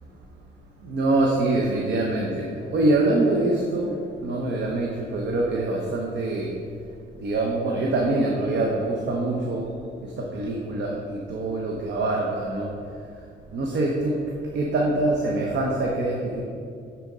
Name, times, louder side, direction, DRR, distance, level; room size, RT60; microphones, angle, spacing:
voice 1, 0.8-3.9 4.2-6.5 7.2-9.6 10.2-12.7 13.5-14.2 14.5-16.4, right 2 dB, 60° right, -1 dB, 0.8 m, -24 dB
9.2 x 4.4 x 3.7 m, 2.5 s
cardioid pair, 90°, 20 cm